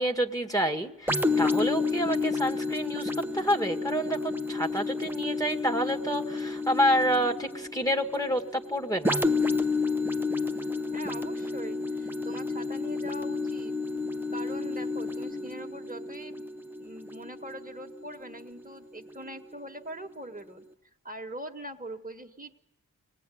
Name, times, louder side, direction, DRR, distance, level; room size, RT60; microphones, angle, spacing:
voice 1, 0.0-9.2, equal, 10° left, 4 dB, 1.9 m, -28 dB
sound 1, 1.1-18.6 19.1-19.3, left 3 dB, 5° right, 1.0 m, -31 dB
voice 2, 10.9-13.8 14.3-16.5 16.8-20.7 21.0-22.5, right 1 dB, 25° right, 6 dB, 1.7 m, -42 dB
24.5 x 19.5 x 9.3 m, 0.80 s
wide cardioid pair, 85°, 34 cm